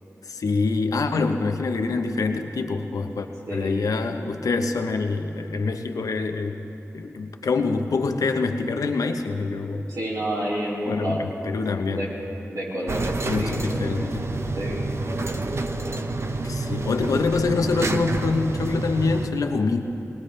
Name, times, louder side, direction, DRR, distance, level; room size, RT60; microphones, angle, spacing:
voice 1, 0.3-6.6 6.9-9.8 10.9-12.1 13.3-14.3 16.4-19.8, left 4 dB, 85° left, 6 dB, 0.9 m, -25 dB
voice 2, 3.5-3.8 9.7-11.3 11.9-12.1 12.5-13.9 14.6-14.8, right 1 dB, 85° right, -7 dB, 4.1 m, -29 dB
sound 1, 12.9-19.3, right 2 dB, 50° right, 0.9 m, -28 dB
21.5 x 19.5 x 3.3 m, 2.9 s
cardioid pair, 40°, 6 cm